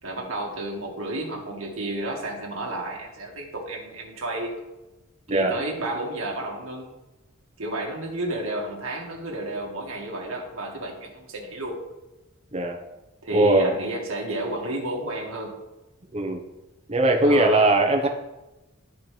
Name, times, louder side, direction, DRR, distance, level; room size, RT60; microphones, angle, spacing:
voice 1, 0.0-4.6 5.3-6.9 7.6-11.8 13.2-15.6 17.2-17.7, right 1 dB, 75° right, -1 dB, 1.8 m, -31 dB
voice 2, 13.3-13.7 16.1-16.4 16.9-18.1, right 2 dB, 30° right, 2 dB, 1.0 m, -20 dB
12.5 x 4.5 x 3.4 m, 1.0 s
head